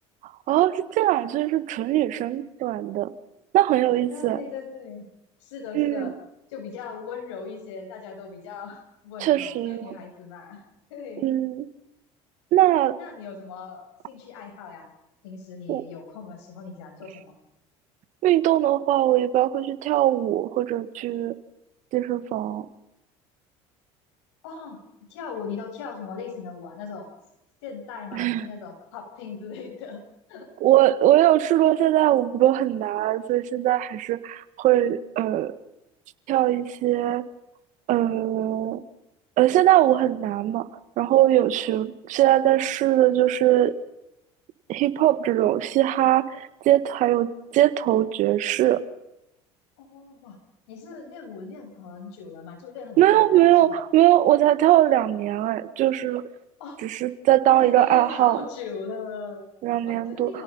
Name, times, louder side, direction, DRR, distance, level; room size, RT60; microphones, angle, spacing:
voice 1, 0.5-3.1 3.5-4.4 5.7-6.1 9.2-9.9 11.2-11.7 12.5-12.9 15.7-15.8 18.2-21.3 21.9-22.6 28.1-28.4 30.6-35.5 36.3-37.2 37.9-38.8 39.4-40.6 41.0-43.7 44.7-48.8 53.0-56.2 56.8-58.4 59.6-60.3, right 13 dB, 60° right, 13 dB, 1.7 m, -21 dB
voice 2, 4.1-5.1 5.4-6.1 6.5-10.6 10.9-11.2 12.8-14.9 15.2-17.3 24.4-24.8 25.1-27.1 27.6-30.5 49.8-50.4 50.7-53.8 56.6-56.8 57.5-59.5 59.9-60.4, left 5 dB, 85° left, 3 dB, 7.6 m, -38 dB
29.0 x 18.0 x 5.5 m, 0.88 s
supercardioid pair, 90°, 14 cm